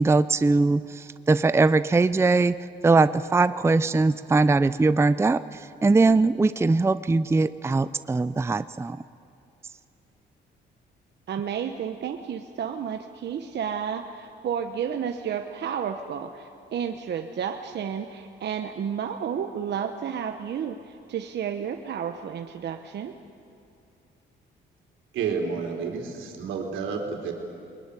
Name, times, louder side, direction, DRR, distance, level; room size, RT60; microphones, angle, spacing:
voice 1, 0.0-2.6 2.8-5.4 5.8-9.0, right 3 dB, 15° right, 14 dB, 0.5 m, -21 dB
voice 2, 11.3-23.1, right 8 dB, 60° right, 6 dB, 1.1 m, -31 dB
voice 3, 25.1-27.3, right 5 dB, 90° right, 2 dB, 3.6 m, -30 dB
22.0 x 21.5 x 9.9 m, 2.6 s
cardioid pair, 90°, 20 cm